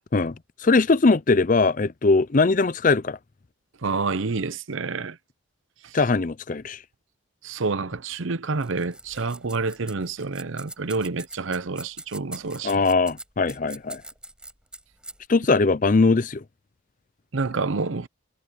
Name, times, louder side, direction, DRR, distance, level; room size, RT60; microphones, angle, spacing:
voice 1, 0.6-3.2 5.9-6.8 12.6-14.0 15.3-16.4, left 3 dB, 40° left, 0.5 m, -20 dB
voice 2, 3.8-5.2 7.4-12.7 17.3-18.1, right 4 dB, 75° right, 0.7 m, -28 dB
sound 1, 8.5-15.3, right 2 dB, 5° right, 4.8 m, -42 dB
head